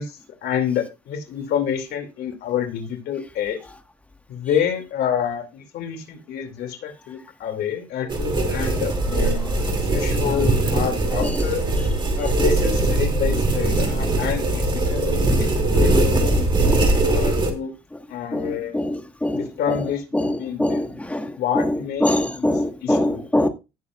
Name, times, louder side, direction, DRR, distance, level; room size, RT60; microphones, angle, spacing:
voice 1, 0.0-3.6 4.3-11.6 12.2-17.7 18.1-18.8 19.3-20.0 20.4-20.8 21.4-22.1 22.8-23.2, left 8 dB, 75° left, 2.5 m, -28 dB
sound 1, 8.1-17.5, right 2 dB, 30° right, 2.6 m, -21 dB
voice 2, 10.1-10.4 11.2-11.5 11.8-11.9 12.1-12.2 15.8-17.3 18.3-19.9 20.1-23.5, left 1 dB, 10° left, 1.5 m, -25 dB
17.0 x 7.0 x 2.4 m
cardioid pair, 110°, 17 cm